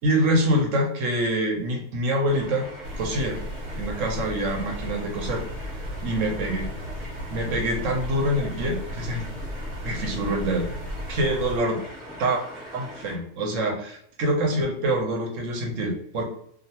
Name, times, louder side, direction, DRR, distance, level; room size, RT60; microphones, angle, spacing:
voice 1, 0.0-2.7 2.9-3.4 3.7-5.4 6.0-6.7 7.3-9.3 9.8-10.7 11.1-11.8 12.2-12.4 12.7-16.2, right 1 dB, 65° right, 2 dB, 1.0 m, -25 dB
sound 1, 2.2-13.2, equal, 10° right, 0.9 m, -42 dB
sound 2, 2.8-11.6, equal, 85° right, 1.2 m, -35 dB
2.4 x 2.4 x 2.8 m, 0.66 s
omnidirectional pair, 1.6 m